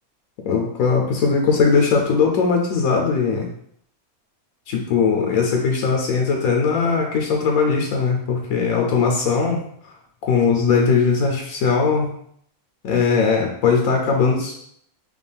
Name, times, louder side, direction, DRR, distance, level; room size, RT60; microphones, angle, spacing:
voice 1, 0.4-3.5 4.7-9.6 10.2-12.1 12.8-14.6, left 5 dB, 80° left, 1 dB, 1.1 m, -19 dB
5.2 x 2.3 x 3.4 m, 0.66 s
omnidirectional pair, 1.5 m